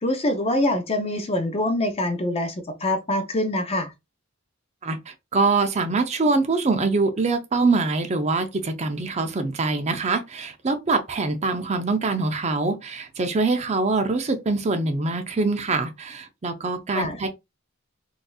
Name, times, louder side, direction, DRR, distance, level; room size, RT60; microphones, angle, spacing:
voice 1, 0.0-3.9 16.9-17.2, left 1 dB, 30° left, 0.6 m, -24 dB
voice 2, 4.8-17.3, right 3 dB, 35° right, 0.5 m, -24 dB
3.9 x 2.6 x 2.3 m
head